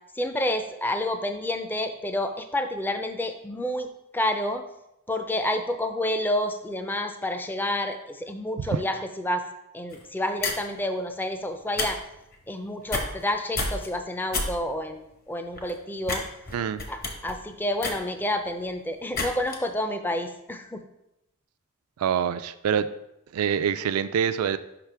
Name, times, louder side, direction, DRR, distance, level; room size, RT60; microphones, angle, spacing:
voice 1, 0.1-4.6 5.1-9.5 9.7-12.0 12.5-16.2 16.9-20.8, left 1 dB, 10° left, 7 dB, 0.4 m, -29 dB
sound 1, 9.9-10.0 10.4-10.7 11.6-11.9 12.1-12.4 12.8-13.3 13.5-13.9 14.3-14.5 14.9-15.0 15.5-15.7 16.0-16.2 16.5-18.6 19.1-19.6, left 3 dB, 45° left, 0.9 m, -29 dB
voice 2, 16.5-16.8 22.0-22.9 23.3-24.6, right 8 dB, 80° right, 12 dB, 0.3 m, -25 dB
5.9 x 5.5 x 3.3 m, 0.85 s
head